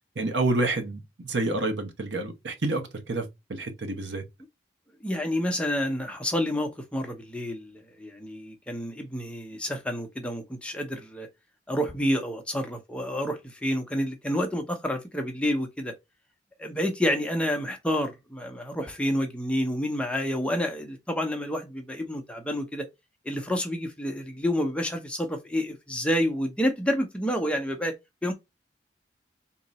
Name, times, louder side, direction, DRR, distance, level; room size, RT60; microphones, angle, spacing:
voice 1, 0.2-4.2, right 2 dB, 80° right, 1.0 m, -29 dB
voice 2, 5.0-11.3 11.7-15.9 16.6-22.9 23.2-28.0 28.2-28.3, equal, 5° left, 0.7 m, -29 dB
3.8 x 2.9 x 4.1 m
head